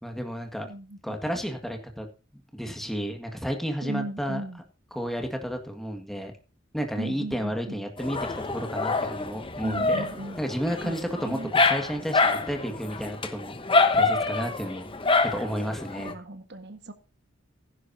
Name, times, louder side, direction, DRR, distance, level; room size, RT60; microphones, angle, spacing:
voice 1, 0.0-0.7 1.0-2.1 2.5-4.4 4.9-6.3 6.7-10.1 10.4-14.9 15.2-16.1, equal, ahead, 1.8 m, -32 dB
voice 2, 0.6-1.0 3.8-4.6 7.0-7.8 9.6-10.5 10.8-11.5 15.3-15.5 16.0-16.9, right 1 dB, 55° right, 1.5 m, -37 dB
Dog, 8.0-16.1, left 3 dB, 25° left, 1.1 m, -26 dB
15.5 x 11.0 x 2.8 m
head